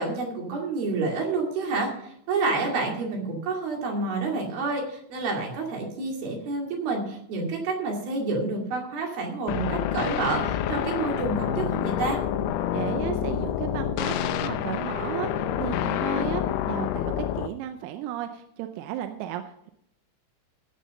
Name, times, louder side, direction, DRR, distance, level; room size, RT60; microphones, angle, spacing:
voice 1, 0.0-12.2, right 3 dB, 55° right, 0 dB, 3.8 m, -29 dB
sound 1, 9.5-17.5, left 10 dB, 80° left, 2.7 m, -28 dB
voice 2, 12.7-19.7, right 12 dB, 90° right, 7 dB, 3.4 m, -34 dB
17.0 x 6.5 x 5.3 m, 0.72 s
omnidirectional pair, 5.9 m